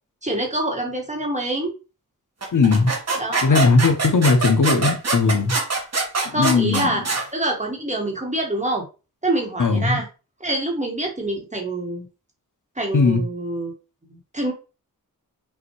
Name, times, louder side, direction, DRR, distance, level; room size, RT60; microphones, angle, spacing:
voice 1, 0.2-1.7 3.2-3.7 6.3-8.8 9.2-10.1 10.4-12.1 12.8-13.7 14.1-14.5, right 1 dB, 20° right, 1.5 m, -26 dB
sound 1, 2.4-7.3, right 3 dB, 45° right, 1.3 m, -24 dB
voice 2, 2.5-2.9 3.4-5.5 6.3-7.0 9.6-10.0 12.9-13.2, left 4 dB, 60° left, 0.9 m, -18 dB
5.6 x 2.7 x 3.1 m
wide cardioid pair, 85°, 35 cm